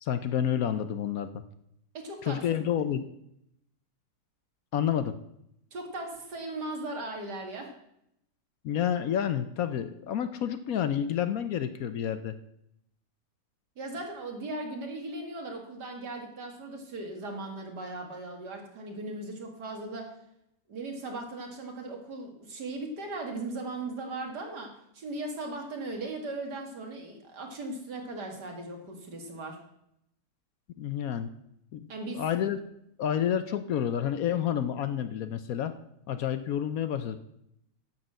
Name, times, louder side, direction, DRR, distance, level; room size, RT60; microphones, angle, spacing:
voice 1, 0.0-1.4 2.2-3.0 4.7-5.2 8.6-12.4 30.8-31.3 31.7-32.6 33.0-35.8 36.1-37.2, left 9 dB, 65° left, 11 dB, 1.0 m, -29 dB
voice 2, 1.9-2.6 5.7-7.7 13.8-20.1 20.7-29.6 31.9-32.2, right 2 dB, 75° right, 2 dB, 2.6 m, -38 dB
10.5 x 6.8 x 7.5 m, 0.77 s
omnidirectional pair, 1.8 m